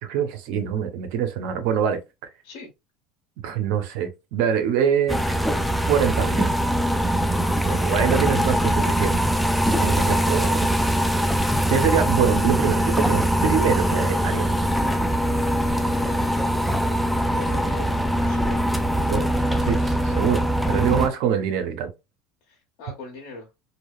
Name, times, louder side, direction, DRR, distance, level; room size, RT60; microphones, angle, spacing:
voice 1, 0.0-2.0 3.4-5.2 5.9-6.5 7.6-9.2 9.6-10.6 11.7-14.5 19.1-21.9, right 8 dB, 70° right, 0.6 m, -24 dB
sound 1, 5.1-21.1, equal, ahead, 0.3 m, -22 dB
voice 2, 7.9-8.2 9.9-10.2 15.6-17.0 17.3-18.8 22.5-23.5, left 2 dB, 65° left, 0.8 m, -41 dB
2.7 x 2.0 x 2.3 m
supercardioid pair, 120°, 0 cm